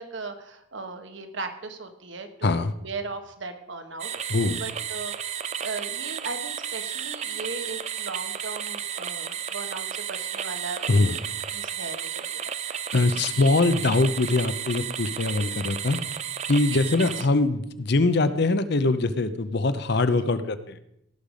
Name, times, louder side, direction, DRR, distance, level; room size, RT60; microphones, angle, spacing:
voice 1, 0.0-10.9 11.5-12.8 13.3-13.7 16.7-16.8 17.2-17.3, right 3 dB, 70° right, 7 dB, 1.3 m, -38 dB
voice 2, 2.4-2.7 4.3-4.6 10.9-11.2 12.9-16.0 16.5-20.8, left 2 dB, 55° left, 12 dB, 0.7 m, -23 dB
sound 1, 4.0-17.3, right 9 dB, 35° right, 0.5 m, -33 dB
17.0 x 6.7 x 5.2 m, 0.77 s
head